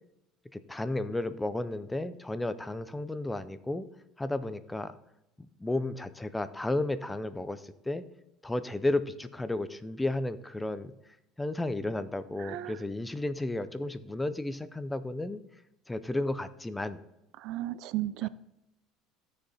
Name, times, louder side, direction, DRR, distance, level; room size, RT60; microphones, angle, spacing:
voice 1, 0.5-3.9 4.2-4.9 5.4-8.0 8.4-10.9 11.4-15.4 15.9-17.0, left 2 dB, 5° left, 0.5 m, -33 dB
voice 2, 12.4-12.8 17.4-18.3, right 15 dB, 55° right, 0.4 m, -34 dB
13.5 x 6.6 x 4.1 m
cardioid pair, 145°, 0 cm